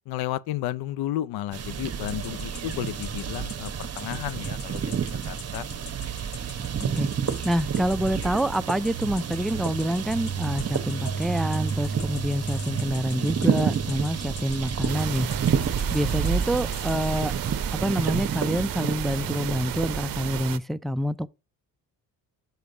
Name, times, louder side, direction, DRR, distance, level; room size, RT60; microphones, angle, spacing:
voice 1, 0.1-4.8 5.2-5.6, left 13 dB, 75° left, 0.6 m, -32 dB
sound 1, 1.5-20.4, right 7 dB, 40° right, 0.9 m, -29 dB
sound 2, 2.1-17.1, left 9 dB, 45° left, 0.9 m, -44 dB
voice 2, 6.8-7.1 7.4-15.3 15.9-17.3 17.7-21.3, equal, ahead, 0.3 m, -27 dB
sound 3, 14.9-20.6, right 12 dB, 65° right, 0.6 m, -34 dB
5.9 x 5.2 x 4.9 m
supercardioid pair, 65°, 38 cm